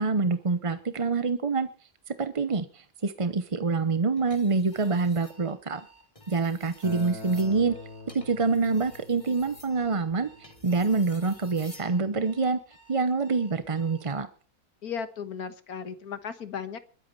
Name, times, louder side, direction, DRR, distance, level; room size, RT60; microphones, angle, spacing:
voice 1, 0.0-1.7 2.1-5.8 6.3-7.8 8.1-12.6 12.9-14.3, right 4 dB, 30° right, 11 dB, 0.6 m, -26 dB
sound 1, 4.2-5.4 6.0-11.9 13.4-13.7, left 1 dB, 20° left, 2.6 m, -53 dB
Alarm, 4.7-14.1, right 2 dB, 90° left, 4.2 m, -57 dB
Acoustic guitar, 6.8-12.0, left 2 dB, 80° right, 4.3 m, -45 dB
voice 2, 14.8-16.8, left 7 dB, 75° left, 11 dB, 1.8 m, -36 dB
21.5 x 8.5 x 5.4 m, 0.38 s
omnidirectional pair, 1.6 m